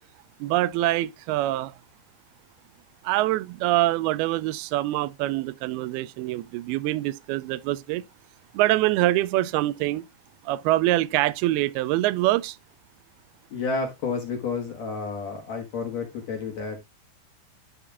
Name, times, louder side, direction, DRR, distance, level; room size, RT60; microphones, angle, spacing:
voice 1, 0.4-1.8 3.0-8.0 8.5-10.1 10.4-12.6, right 16 dB, 80° right, 2.3 m, -24 dB
voice 2, 13.5-16.8, left 4 dB, 55° left, 2.1 m, -30 dB
11.0 x 4.8 x 3.4 m
omnidirectional pair, 4.8 m